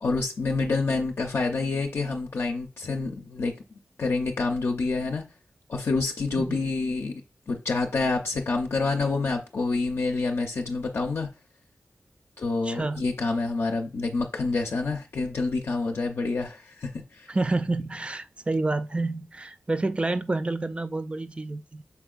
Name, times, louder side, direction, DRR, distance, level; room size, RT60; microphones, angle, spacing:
voice 1, 0.0-5.2 5.7-7.1 7.5-11.3 12.4-17.3, left 3 dB, 75° left, 0.5 m, -27 dB
voice 2, 12.6-13.0 17.3-21.8, right 2 dB, 25° right, 0.3 m, -29 dB
5.8 x 3.7 x 2.4 m
wide cardioid pair, 85°, 4 cm